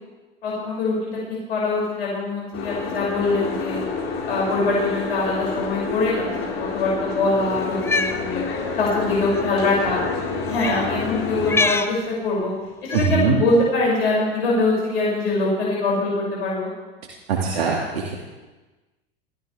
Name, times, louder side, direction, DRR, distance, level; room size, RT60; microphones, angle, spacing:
voice 1, 0.4-1.2 1.5-3.8 4.2-8.4 8.8-10.0 10.4-12.5 12.9-16.7, left 2 dB, 80° left, -5 dB, 6.9 m, -23 dB
Boat Water vehicle, 2.5-11.6, left 4 dB, 45° left, 4.6 m, -28 dB
Cat, 7.7-8.2 9.2-9.4 10.5-10.8 11.4-11.9 12.9-13.2, left 3 dB, 10° left, 0.8 m, -24 dB
voice 2, 12.9-13.4 17.3-18.1, right 6 dB, 80° right, -2 dB, 2.5 m, -22 dB
23.0 x 15.5 x 3.5 m, 1.2 s
hypercardioid pair, 90°, 30 cm